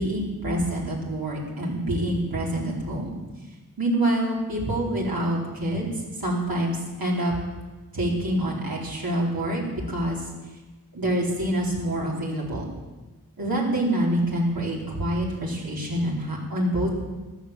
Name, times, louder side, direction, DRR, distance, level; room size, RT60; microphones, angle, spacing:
voice 1, 0.0-3.1 3.8-5.9 6.2-7.3 7.9-9.6 9.9-10.2 10.9-12.7 13.4-16.9, right 1 dB, 75° right, -3 dB, 4.3 m, -26 dB
14.5 x 12.0 x 7.4 m, 1.2 s
wide cardioid pair, 60°, 36 cm